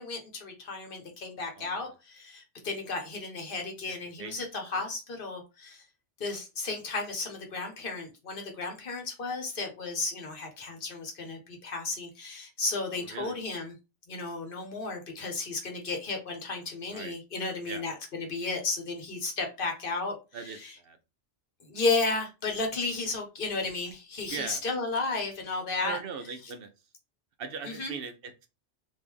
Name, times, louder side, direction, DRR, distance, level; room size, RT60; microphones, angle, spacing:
voice 1, 0.0-5.8 6.2-13.7 14.1-20.2 20.4-20.7 21.6-26.0 27.6-27.9, left 3 dB, 50° left, 4 dB, 1.0 m, -33 dB
voice 2, 12.9-13.4 16.9-17.1 17.6-17.8 20.3-21.0 24.3-24.6 25.8-26.7 27.4-28.5, right 6 dB, 60° right, 7 dB, 0.7 m, -40 dB
3.1 x 2.6 x 3.5 m, 0.28 s
omnidirectional pair, 1.2 m